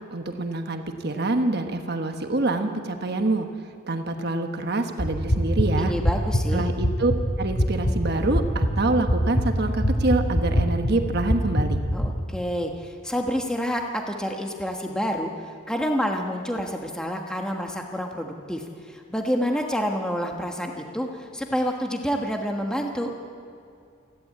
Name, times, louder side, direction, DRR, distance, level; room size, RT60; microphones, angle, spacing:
voice 1, 0.0-3.5 3.9-5.9 6.5-7.1 7.4-11.8, right 2 dB, 50° right, 6 dB, 1.2 m, -26 dB
sound 1, 5.0-12.1, equal, 40° left, 2.0 m, -24 dB
voice 2, 5.8-6.7 11.9-15.3 15.7-23.1, equal, 5° left, 2 dB, 1.3 m, -28 dB
28.0 x 11.5 x 8.6 m, 2.4 s
head